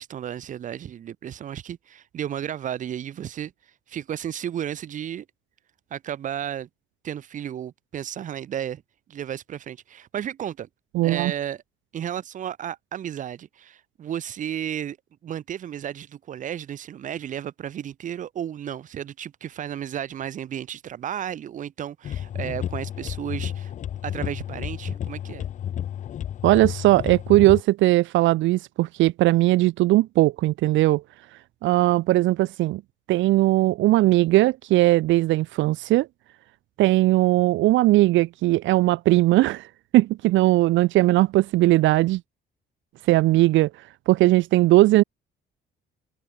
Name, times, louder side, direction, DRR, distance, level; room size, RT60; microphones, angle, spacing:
voice 1, 0.0-3.5 3.9-5.3 5.9-6.7 7.0-8.8 9.1-10.7 11.0-11.6 11.9-15.0 15.2-23.7 24.0-25.4, right 10 dB, 40° right, 2.0 m, -33 dB
voice 2, 10.9-11.3 26.4-31.0 31.6-32.8 33.1-36.1 36.8-39.7 39.9-42.2 43.1-43.7 44.1-45.0, right 17 dB, 80° right, 0.9 m, -19 dB
sound 1, 22.0-27.6, left 10 dB, 40° left, 0.9 m, -31 dB
cardioid pair, 180°, 19 cm